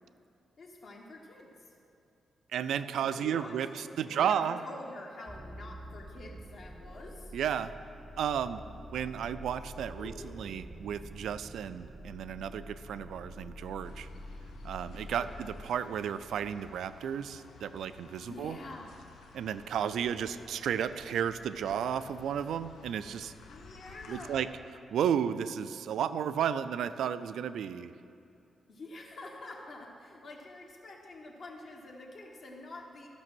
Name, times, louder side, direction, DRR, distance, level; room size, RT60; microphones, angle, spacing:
voice 1, 0.6-1.7 3.0-7.4 10.0-10.4 15.1-15.5 18.2-19.0 23.5-24.4 28.7-33.1, left 2 dB, 50° left, -1 dB, 1.0 m, -47 dB
voice 2, 2.5-4.6 7.3-7.7 8.2-8.6 8.9-14.1 14.6-18.6 19.3-23.3 24.1-24.5 24.9-27.9, right 8 dB, 80° right, 13 dB, 0.4 m, -33 dB
sound 1, 5.3-15.6, equal, 15° right, 0.5 m, -47 dB
sound 2, 13.8-24.4, left 4 dB, 80° left, 0.8 m, -54 dB
13.5 x 6.1 x 6.1 m, 2.6 s
wide cardioid pair, 180°, 0 cm